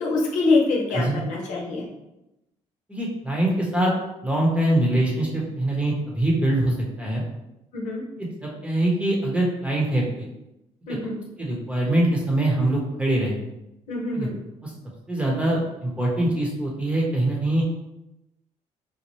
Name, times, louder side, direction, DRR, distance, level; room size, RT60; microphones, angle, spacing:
voice 1, 0.0-1.9 7.7-8.0 10.9-11.2 13.9-14.4, left 3 dB, 75° left, -2 dB, 0.9 m, -24 dB
voice 2, 2.9-3.9 4.2-7.2 8.2-10.3 10.9-11.0 11.4-13.4 14.1-14.3 14.6-14.7 15.1-17.6, right 1 dB, 10° right, -3 dB, 0.9 m, -23 dB
4.1 x 2.1 x 3.0 m, 0.91 s
cardioid pair, 105°, 13 cm